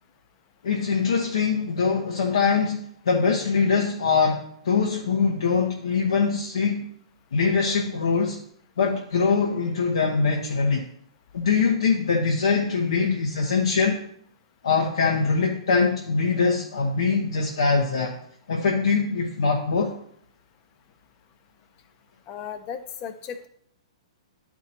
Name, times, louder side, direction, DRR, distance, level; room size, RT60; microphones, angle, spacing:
voice 1, 0.6-6.9 7.3-8.4 8.8-10.9 11.3-14.0 14.6-18.2 18.5-19.9, left 5 dB, 65° left, 1 dB, 0.9 m, -23 dB
voice 2, 22.3-23.5, left 8 dB, 30° left, 9 dB, 0.7 m, -35 dB
12.0 x 4.6 x 2.8 m, 0.68 s
figure-of-eight pair, 110°, 3 cm